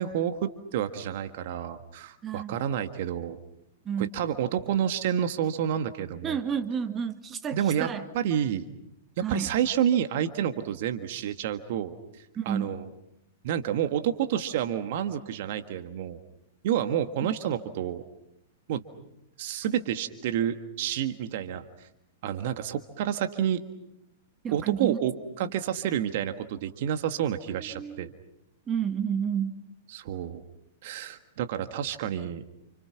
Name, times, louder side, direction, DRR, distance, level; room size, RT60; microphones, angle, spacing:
voice 1, 0.0-3.4 4.0-6.4 7.5-7.9 8.1-8.6 9.3-12.0 12.4-12.8 13.4-16.2 16.6-18.0 18.7-18.8 19.4-21.9 22.2-23.6 24.5-28.1 29.9-30.4 30.8-32.4, right 10 dB, 55° right, 8 dB, 1.6 m, -29 dB
voice 2, 2.2-2.6 3.9-4.1 6.2-8.1 9.2-9.5 12.4-12.8 24.4-25.0 25.4-25.5 27.6-28.1 28.7-29.6, right 7 dB, 25° right, 8 dB, 2.0 m, -31 dB
29.5 x 29.0 x 5.9 m, 0.81 s
figure-of-eight pair, 105°, 0 cm